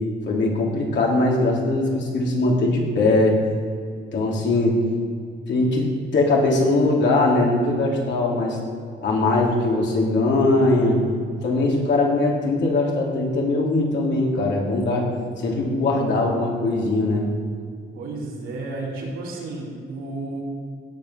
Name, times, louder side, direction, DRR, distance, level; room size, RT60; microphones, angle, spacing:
voice 1, 0.3-3.4 4.1-4.8 5.5-8.6 9.0-11.0 11.4-15.1 15.4-17.3, left 2 dB, 65° left, -2 dB, 3.3 m, -21 dB
voice 2, 17.9-20.4, right 2 dB, 90° right, -3 dB, 3.4 m, -32 dB
16.5 x 5.6 x 6.0 m, 2.2 s
cardioid pair, 90°, 20 cm